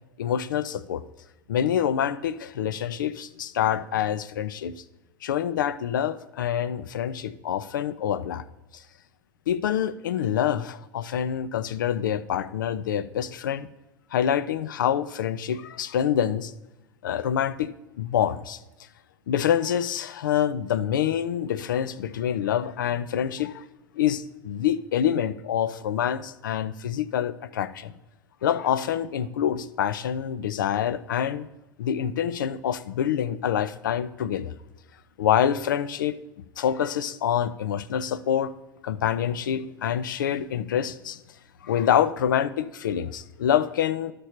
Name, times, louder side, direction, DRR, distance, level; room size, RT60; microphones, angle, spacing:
voice 1, 0.2-1.0 1.5-4.8 5.2-8.4 8.7-8.8 9.5-13.7 14.1-16.5 17.0-18.6 19.3-23.6 24.0-27.9 28.4-31.5 31.8-34.5 35.2-36.1 36.6-38.5 38.8-41.2 41.6-44.1, left 9 dB, 70° left, 16 dB, 0.5 m, -26 dB
12.0 x 6.8 x 4.3 m, 0.99 s
figure-of-eight pair, 80°, 11 cm